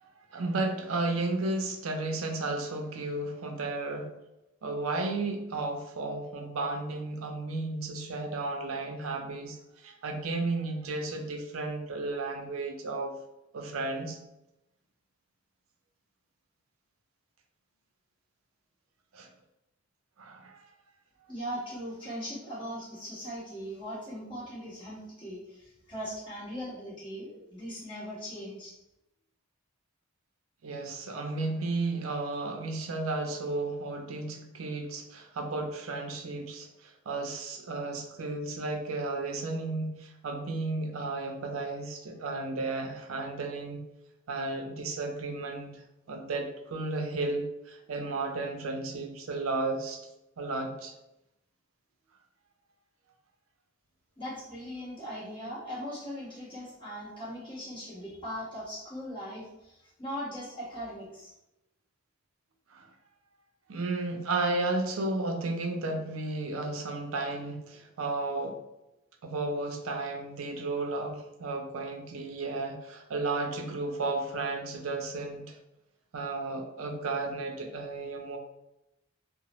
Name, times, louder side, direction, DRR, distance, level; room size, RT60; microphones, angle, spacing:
voice 1, 0.3-4.1 4.6-9.6 9.8-13.2 13.5-14.2 19.1-19.3 20.2-20.6 30.6-43.9 44.3-45.8 46.1-50.0 50.4-50.9 62.7-62.9 63.7-68.6 69.2-75.6 76.1-78.4, right 2 dB, 85° right, 4 dB, 0.5 m, -33 dB
voice 2, 21.3-28.7 54.2-61.3, equal, 25° left, -11 dB, 1.3 m, -39 dB
2.8 x 2.0 x 3.0 m, 0.89 s
head